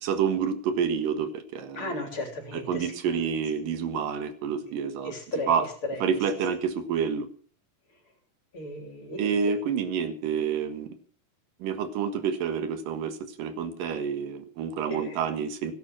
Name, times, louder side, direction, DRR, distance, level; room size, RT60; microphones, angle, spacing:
voice 1, 0.0-1.9 2.5-5.1 5.5-5.7 6.0-7.3 9.2-10.9 11.6-15.7, right 7 dB, 70° right, 10 dB, 3.1 m, -28 dB
voice 2, 1.7-2.9 5.0-5.6 5.9-6.2 8.5-9.3 14.9-15.2, left 1 dB, 35° left, 4 dB, 4.0 m, -35 dB
17.0 x 12.0 x 6.1 m, 0.43 s
omnidirectional pair, 4.2 m